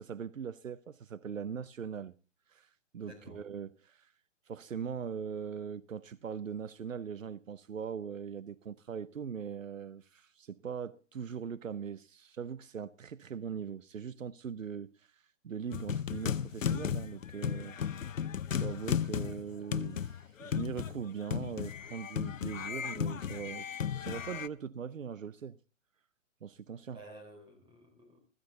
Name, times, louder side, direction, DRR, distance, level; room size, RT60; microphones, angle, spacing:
voice 1, 0.0-2.1 2.5-4.1 4.5-15.1 15.4-17.8 18.6-25.6 26.4-27.0, right 7 dB, 85° right, 0.8 m, -41 dB
voice 2, 3.0-3.4 22.7-22.9 26.9-28.2, right 1 dB, 15° right, 4.1 m, -52 dB
sound 1, 15.7-24.5, left 8 dB, 80° left, 0.8 m, -35 dB
15.0 x 14.0 x 3.9 m
hypercardioid pair, 145°, 38 cm